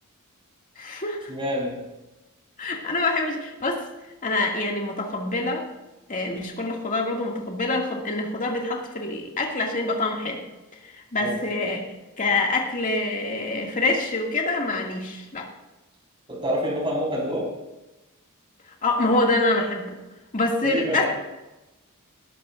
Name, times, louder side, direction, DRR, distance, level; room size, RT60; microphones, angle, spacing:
voice 1, 0.8-1.3 2.6-3.8 4.2-5.7 6.1-10.4 10.8-11.9 12.2-15.5 18.8-20.0 20.3-21.1, left 2 dB, 35° left, 0 dB, 2.3 m, -26 dB
voice 2, 1.3-1.8 11.2-11.4 16.3-17.5 20.6-21.1, equal, 25° right, -3 dB, 4.7 m, -27 dB
19.0 x 12.5 x 2.6 m, 1.0 s
head